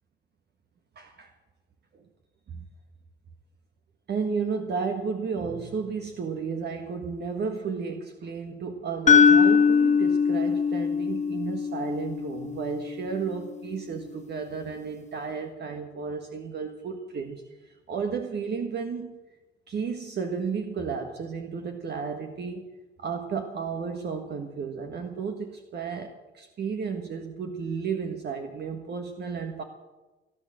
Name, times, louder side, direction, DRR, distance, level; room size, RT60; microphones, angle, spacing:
voice 1, 0.9-1.3 1.9-2.0 2.5-2.6 4.1-19.2 19.7-22.7 23.0-29.6, right 5 dB, 55° right, 4 dB, 1.6 m, -33 dB
sound 1, 9.1-13.1, left 6 dB, 35° left, 1.0 m, -21 dB
17.5 x 10.5 x 7.8 m, 1.1 s
cardioid pair, 90°, 20 cm